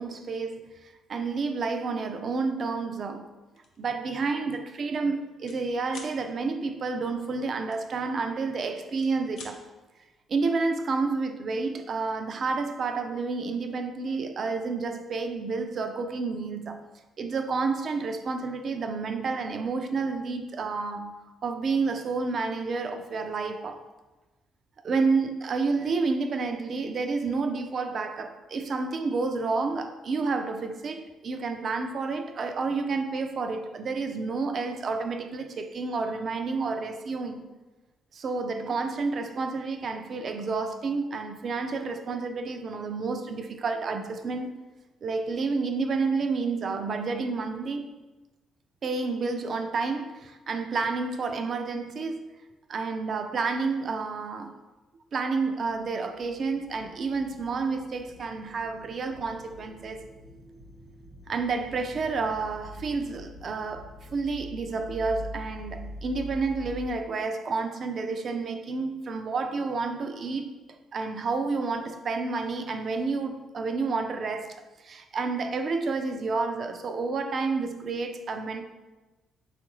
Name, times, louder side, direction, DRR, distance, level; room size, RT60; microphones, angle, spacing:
voice 1, 0.0-3.3 3.8-9.6 10.3-16.8 17.2-23.8 24.8-37.4 38.1-44.5 45.0-47.9 48.8-52.4 52.7-54.6 55.1-60.1 61.3-74.6 74.8-78.6, right 4 dB, 50° right, 0.3 m, -30 dB
sound 1, 3.6-3.8 4.2-4.4 4.7-5.6 5.9-6.2 7.7-8.5 8.8-9.6, left 4 dB, 75° left, 0.5 m, -46 dB
sound 2, 55.6-66.9, left 1 dB, 75° right, 1.0 m, -45 dB
3.7 x 2.4 x 2.9 m
cardioid pair, 90°, 0 cm